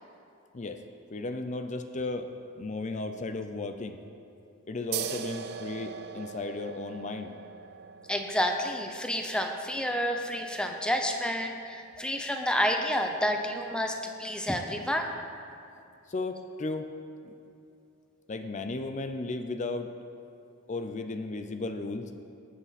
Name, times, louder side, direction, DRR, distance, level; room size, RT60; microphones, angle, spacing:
voice 1, 1.1-2.3 2.6-4.0 4.7-7.3 16.1-16.9 17.2-17.3 18.3-19.9 20.7-22.1, left 3 dB, 35° left, 7 dB, 0.5 m, -35 dB
sound 1, 4.9-12.0, right 7 dB, 50° right, 0.5 m, -41 dB
voice 2, 8.1-15.1, equal, 5° left, 4 dB, 0.8 m, -29 dB
18.5 x 8.1 x 4.2 m, 2.8 s
head